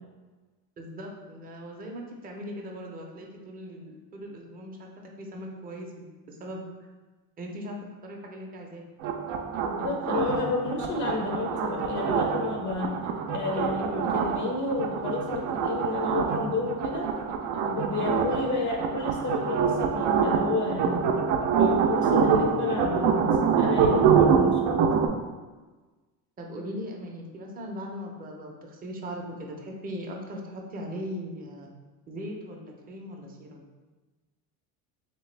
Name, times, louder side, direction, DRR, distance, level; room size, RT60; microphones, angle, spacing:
voice 1, 0.8-4.9 5.2-6.6 7.4-7.8 8.0-8.8 26.4-31.7 32.1-33.6, equal, 20° right, 0 dB, 0.5 m, -39 dB
sound 1, 9.0-25.1, right 6 dB, 65° right, 0.5 m, -25 dB
voice 2, 9.6-13.0 13.3-17.1 17.7-21.0 21.6-23.3 23.6-24.8, left 3 dB, 40° left, 0 dB, 0.6 m, -31 dB
3.3 x 2.9 x 3.2 m, 1.3 s
supercardioid pair, 110°, 44 cm